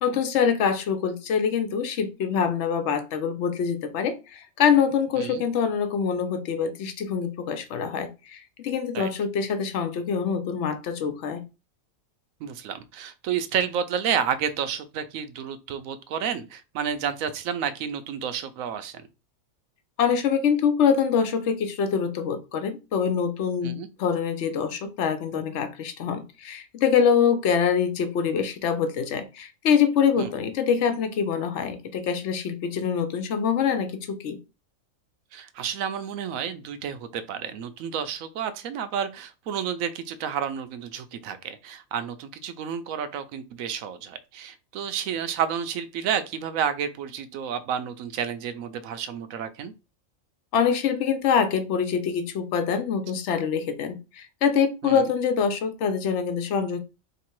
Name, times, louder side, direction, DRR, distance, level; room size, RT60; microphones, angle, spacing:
voice 1, 0.0-11.4 20.0-34.4 50.5-56.8, left 7 dB, 65° left, 0.9 m, -25 dB
voice 2, 12.4-19.1 23.6-23.9 30.2-30.3 35.3-49.7 54.8-55.1, right 8 dB, 80° right, 1.0 m, -30 dB
3.2 x 2.9 x 4.6 m
omnidirectional pair, 1.4 m